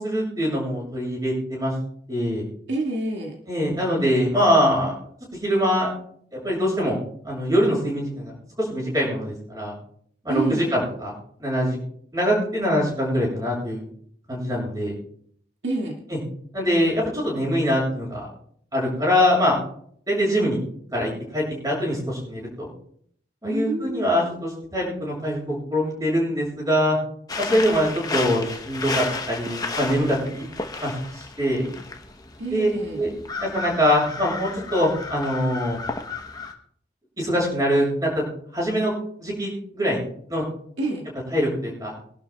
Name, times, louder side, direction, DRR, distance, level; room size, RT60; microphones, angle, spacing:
voice 1, 0.0-1.7 2.1-2.4 3.5-4.9 5.4-5.9 6.3-7.0 7.2-9.7 10.2-11.1 11.4-11.8 12.1-13.8 14.3-15.0 16.1-16.2 16.5-18.3 18.7-19.6 20.1-20.6 20.9-22.7 23.4-27.0 27.4-30.4 30.8-31.7 32.5-32.7 33.0-33.1 33.4-35.8 37.2-38.2 38.5-38.9 39.2-40.0 40.3-40.4 41.3-41.9, equal, 20° right, -3 dB, 7.3 m, -23 dB
voice 2, 2.7-3.4 10.3-10.7 15.6-16.0 23.4-24.1 32.4-33.0 40.8-41.1, right 2 dB, 80° right, 0 dB, 2.2 m, -28 dB
sound 1, 27.3-36.5, left 3 dB, 20° left, 1.0 m, -33 dB
24.5 x 12.0 x 2.4 m, 0.63 s
head